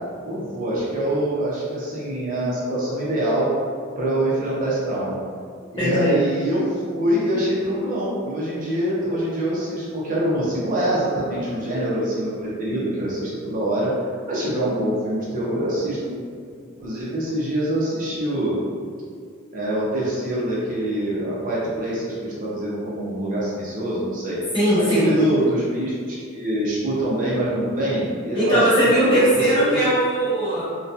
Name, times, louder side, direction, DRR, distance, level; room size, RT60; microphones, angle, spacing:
voice 1, 0.2-3.5 4.0-5.2 5.7-13.9 14.3-16.1 16.8-18.6 19.5-24.4 24.9-29.8, right 1 dB, 40° right, -7 dB, 0.5 m, -24 dB
voice 2, 5.8-6.2 24.5-25.1 28.3-30.6, right 1 dB, 25° left, -11 dB, 1.0 m, -19 dB
2.6 x 2.2 x 2.3 m, 2.1 s
head